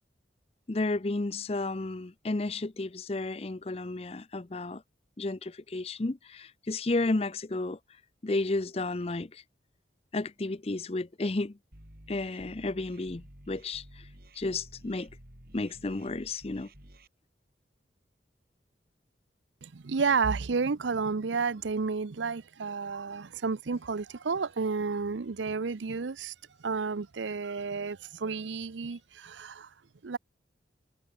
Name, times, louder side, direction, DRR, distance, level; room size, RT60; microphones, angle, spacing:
voice 1, 0.7-4.8 5.2-7.8 8.2-9.4 10.1-11.6 12.1-13.8 14.4-15.1 15.5-16.7, left 2 dB, 35° left, 0.6 m, -32 dB
sound 1, 11.7-17.1, right 1 dB, 55° right, 6.4 m, -52 dB
voice 2, 19.6-26.3 26.6-29.7 30.0-30.2, right 5 dB, 85° right, 0.6 m, -31 dB
head